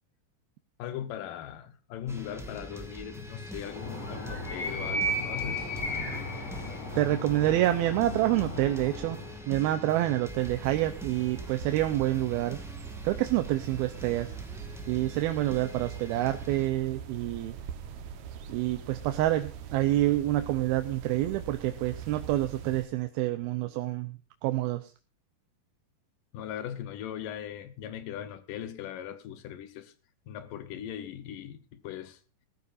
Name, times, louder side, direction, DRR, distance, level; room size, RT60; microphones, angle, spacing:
voice 1, 0.8-5.7 26.3-29.9 30.3-32.2, left 10 dB, 70° left, 2.5 m, -39 dB
sound 1, 2.1-16.7, left 1 dB, 5° right, 0.4 m, -44 dB
Animal, 3.6-9.5, equal, 45° left, 4.8 m, -35 dB
voice 2, 7.0-9.2 9.5-12.6 13.0-14.3 14.9-17.6 18.5-24.9, right 15 dB, 90° right, 2.6 m, -27 dB
sound 2, 10.4-22.9, right 7 dB, 65° right, 2.2 m, -42 dB
20.0 x 13.5 x 2.6 m
omnidirectional pair, 4.2 m